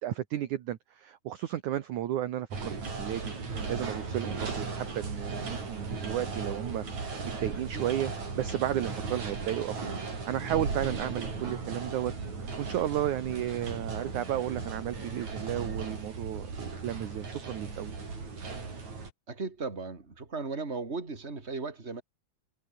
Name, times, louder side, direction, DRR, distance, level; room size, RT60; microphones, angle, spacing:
voice 1, 0.0-8.1 8.4-9.7 10.1-12.1 12.6-18.0, right 12 dB, 60° right, 2.2 m, -33 dB
sound 1, 2.5-19.1, right 4 dB, 45° right, 6.8 m, -37 dB
voice 2, 19.3-22.0, right 4 dB, 15° right, 3.4 m, -36 dB
omnidirectional pair, 4.7 m